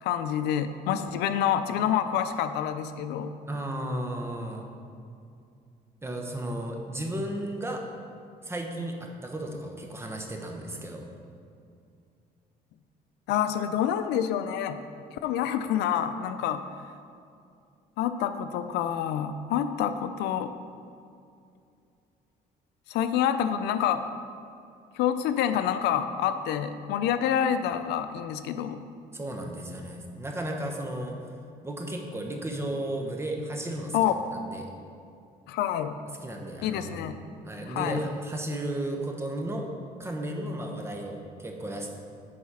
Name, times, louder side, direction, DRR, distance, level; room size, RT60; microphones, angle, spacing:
voice 1, 0.0-3.3 13.3-14.8 15.1-16.9 18.0-20.5 22.9-24.0 24.9-28.8 33.9-34.1 35.5-36.0 36.6-37.1 37.7-38.0, left 9 dB, 85° left, 10 dB, 0.5 m, -27 dB
voice 2, 3.5-4.7 6.0-7.8 8.4-11.0 29.1-31.2 31.6-34.7 36.2-37.0 37.4-39.7 40.0-41.9, right 1 dB, 15° right, 2 dB, 1.1 m, -34 dB
9.4 x 4.1 x 5.8 m, 2.5 s
cardioid pair, 110°, 17 cm